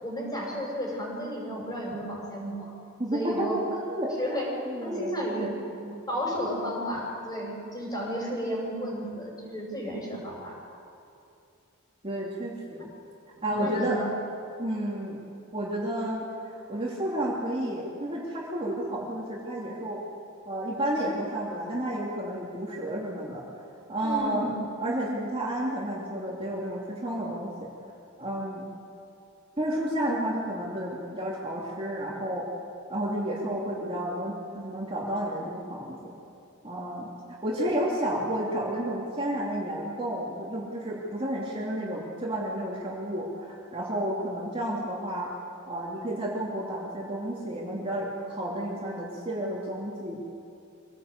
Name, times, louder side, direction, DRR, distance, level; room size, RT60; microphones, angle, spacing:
voice 1, 0.0-2.7 3.1-3.6 4.2-4.5 4.8-5.5 6.1-10.5 13.4-14.1 24.0-24.5 37.5-37.9, equal, 20° left, -2 dB, 6.1 m, -33 dB
voice 2, 3.0-3.6 3.9-4.1 4.7-6.0 12.0-12.9 13.4-14.0 14.6-15.2 15.5-20.0 20.4-23.4 23.9-24.5 24.8-27.7 28.2-28.7 29.6-32.5 32.9-36.1 36.6-45.3 45.7-50.2, right 1 dB, 25° right, -4 dB, 2.9 m, -31 dB
24.0 x 17.0 x 8.2 m, 2.6 s
head